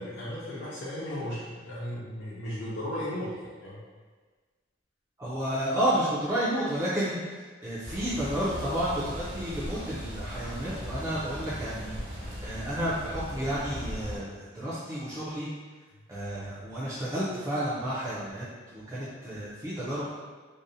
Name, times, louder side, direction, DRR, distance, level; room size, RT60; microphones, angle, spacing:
voice 1, 0.0-3.8, equal, 75° left, -8 dB, 0.5 m, -36 dB
voice 2, 5.2-15.5 16.1-20.1, equal, 15° right, -10 dB, 0.4 m, -31 dB
sound 1, 7.8-14.2, equal, 45° right, 0.9 m, -38 dB
2.6 x 2.0 x 2.5 m, 1.4 s
head